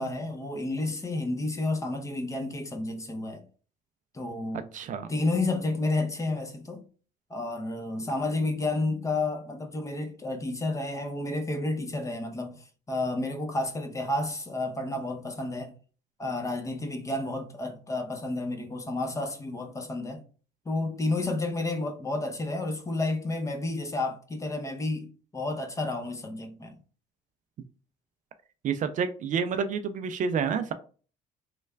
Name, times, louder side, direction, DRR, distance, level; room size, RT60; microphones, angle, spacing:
voice 1, 0.0-3.4 4.1-4.7 5.1-6.8 7.3-15.7 16.2-20.2 20.7-26.7, left 2 dB, 20° left, 0.6 m, -31 dB
voice 2, 4.7-5.1 28.6-30.7, right 6 dB, 50° right, 0.4 m, -29 dB
3.2 x 2.3 x 3.2 m
cardioid pair, 110°, 17 cm